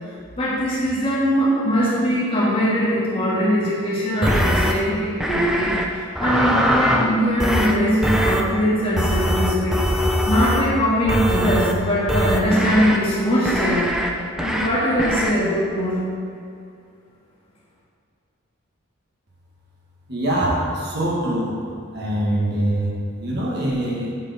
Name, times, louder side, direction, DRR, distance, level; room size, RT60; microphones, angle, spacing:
voice 1, 0.4-5.8 6.2-9.9 10.3-13.9 14.4-16.0, equal, 25° left, -8 dB, 1.9 m, -21 dB
sound 1, 4.2-4.7 5.2-5.8 6.2-7.1 7.4-7.7 8.0-8.4 9.0-10.7 11.1-11.7 12.1-13.0 13.5-14.1 14.4-14.7 15.0-15.3, equal, 5° right, 0.4 m, -21 dB
voice 2, 20.1-21.6 21.9-24.1, right 1 dB, 50° right, -5 dB, 1.5 m, -23 dB
7.4 x 6.6 x 4.2 m, 2.3 s
head